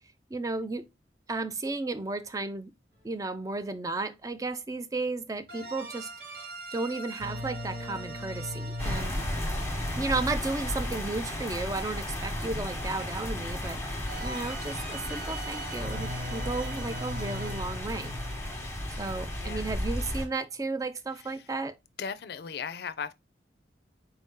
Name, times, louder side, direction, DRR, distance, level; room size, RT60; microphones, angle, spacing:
voice 1, 0.3-0.9 1.3-2.7 3.0-9.2 10.0-18.2 19.0-21.8, right 3 dB, 20° right, 0.4 m, -34 dB
sound 1, 5.5-11.4 14.1-19.8, equal, 50° right, 1.3 m, -41 dB
sound 2, 8.8-20.3, left 1 dB, 15° left, 1.0 m, -34 dB
voice 2, 19.2-19.8 21.2-21.5 22.0-23.1, left 6 dB, 55° left, 0.4 m, -38 dB
4.4 x 2.7 x 3.6 m
head